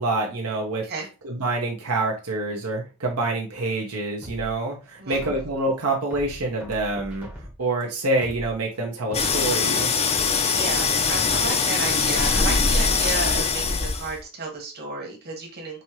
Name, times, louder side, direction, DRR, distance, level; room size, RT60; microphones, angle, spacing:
voice 1, 0.0-0.9 1.2-7.3 7.6-9.9, right 2 dB, 85° right, 0 dB, 0.9 m, -26 dB
sound 1, 4.2-5.6 6.1-7.7 8.1-9.6 10.1-11.7 12.1-12.2, equal, 5° right, 0.7 m, -41 dB
sound 2, 9.1-14.2, left 5 dB, 30° left, 0.5 m, -22 dB
voice 2, 10.5-15.8, right 3 dB, 45° right, 1 dB, 1.4 m, -32 dB
5.3 x 2.8 x 3.0 m, 0.29 s
head